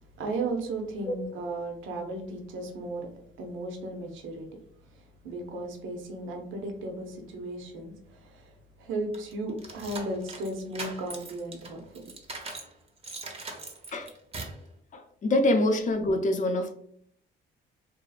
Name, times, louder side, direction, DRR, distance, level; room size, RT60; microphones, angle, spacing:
voice 1, 0.0-3.1 3.4-4.5 4.8-12.0, right 2 dB, 80° right, 3 dB, 0.5 m, -35 dB
sound 1, 9.1-12.7 13.0-14.6, right 3 dB, 30° right, 0.5 m, -40 dB
voice 2, 14.9-16.7, left 1 dB, 40° left, 6 dB, 0.5 m, -25 dB
2.6 x 2.4 x 2.3 m, 0.64 s
cardioid pair, 90°, 20 cm